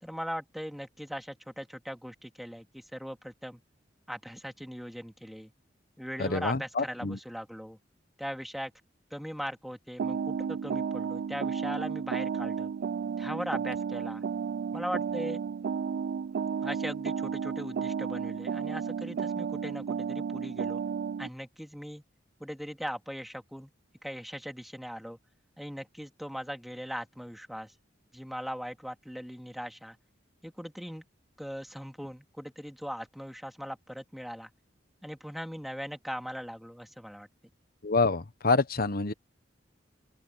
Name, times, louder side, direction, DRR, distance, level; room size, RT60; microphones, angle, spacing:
voice 1, 0.0-3.6 4.1-5.5 6.0-7.8 8.2-8.7 9.1-12.7 13.2-14.2 14.7-15.4 16.6-20.8 21.2-22.0 22.4-23.7 24.0-25.2 25.6-27.7 28.1-30.0 30.4-31.0 31.4-34.5 35.0-37.3, equal, ahead, 2.4 m, -39 dB
voice 2, 6.2-7.2 37.8-39.1, left 3 dB, 55° left, 1.1 m, -27 dB
sound 1, 10.0-21.3, right 6 dB, 60° right, 0.3 m, -33 dB
open air
head